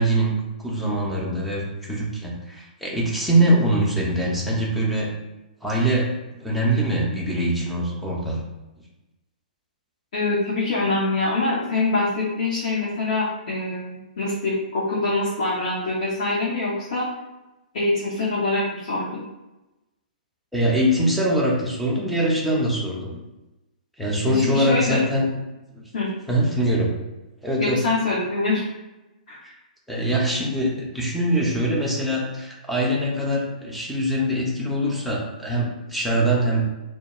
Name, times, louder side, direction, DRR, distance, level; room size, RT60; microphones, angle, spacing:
voice 1, 0.0-5.1 5.6-6.1 6.3-8.4 20.5-23.2 24.0-25.3 25.7-25.9 26.3-26.9 27.4-27.8 29.4-29.5 29.9-36.6, right 1 dB, ahead, -5 dB, 0.5 m, -23 dB
voice 2, 10.1-17.1 17.7-19.2 24.2-25.0 25.9-26.1 27.6-28.6 29.3-29.4, left 2 dB, 50° left, -7 dB, 0.7 m, -24 dB
2.2 x 2.1 x 2.9 m, 1.0 s
figure-of-eight pair, 115°, 5 cm